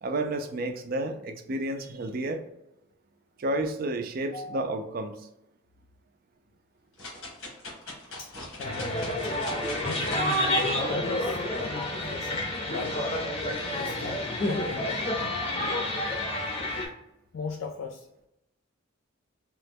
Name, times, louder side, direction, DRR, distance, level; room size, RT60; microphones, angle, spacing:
voice 1, 0.0-2.4 3.4-5.2, right 1 dB, 45° right, 7 dB, 0.4 m, -31 dB
voice 2, 4.3-4.6 8.2-8.3 8.6-9.1 9.8-10.3 10.8-13.0 13.7-15.9 17.3-18.1, left 4 dB, 75° left, 2 dB, 0.3 m, -38 dB
sound 1, 7.0-10.6 11.2-11.3, left 2 dB, 90° left, 1.2 m, -41 dB
sound 2, 8.6-16.9, left 1 dB, 30° left, 0.6 m, -29 dB
2.9 x 2.2 x 3.4 m, 0.84 s
head